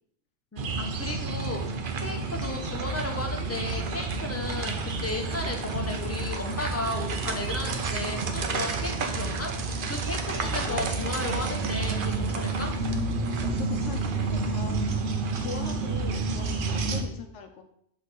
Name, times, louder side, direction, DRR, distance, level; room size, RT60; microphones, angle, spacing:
voice 1, 0.5-9.5 9.9-12.7, left 2 dB, 15° left, 1 dB, 0.7 m, -34 dB
sound 1, 0.6-17.0, right 3 dB, 55° right, 0.8 m, -30 dB
voice 2, 10.4-10.9 13.4-17.6, left 6 dB, 80° left, 5 dB, 1.0 m, -41 dB
6.3 x 3.2 x 5.2 m, 0.71 s
omnidirectional pair, 1.2 m